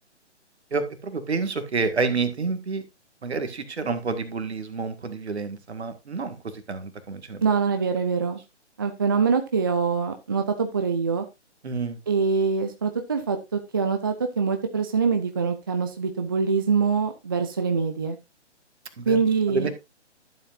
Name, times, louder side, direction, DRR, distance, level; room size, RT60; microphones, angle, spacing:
voice 1, 0.7-2.8 3.2-7.4 11.6-12.0 19.0-19.2 19.5-19.7, right 4 dB, 65° right, 9 dB, 1.9 m, -29 dB
voice 2, 7.4-8.4 8.8-11.3 12.1-18.2 19.1-19.7, right 5 dB, 20° right, 6 dB, 0.5 m, -24 dB
12.5 x 7.6 x 2.6 m, 0.23 s
figure-of-eight pair, 140°, 35 cm